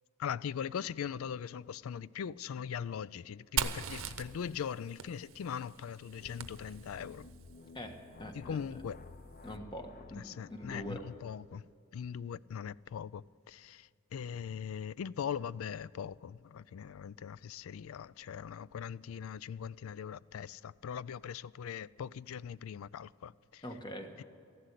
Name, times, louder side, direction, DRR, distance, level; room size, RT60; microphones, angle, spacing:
voice 1, 0.2-7.3 8.3-9.0 10.2-11.6 11.9-23.6 24.2-24.3, left 7 dB, 80° left, 0.4 m, -40 dB
Fire, 3.6-7.2, right 7 dB, 70° right, 0.8 m, -39 dB
sound 1, 6.1-11.3, left 3 dB, 40° left, 0.7 m, -53 dB
voice 2, 8.2-8.8 9.4-11.0 23.6-24.1, equal, 25° left, 1.5 m, -44 dB
14.5 x 11.5 x 8.3 m
head